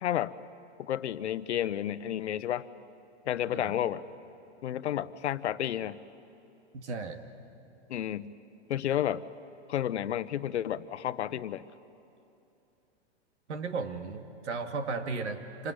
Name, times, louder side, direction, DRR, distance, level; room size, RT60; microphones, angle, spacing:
voice 1, 0.0-0.3 0.8-2.7 3.3-4.0 4.6-6.0 7.9-8.3 8.7-9.2 9.7-11.6, left 11 dB, 75° left, 14 dB, 1.0 m, -31 dB
voice 2, 6.7-7.2 13.5-15.7, right 4 dB, 85° right, 7 dB, 2.3 m, -35 dB
26.0 x 20.0 x 9.8 m, 2.8 s
hypercardioid pair, 150°, 34 cm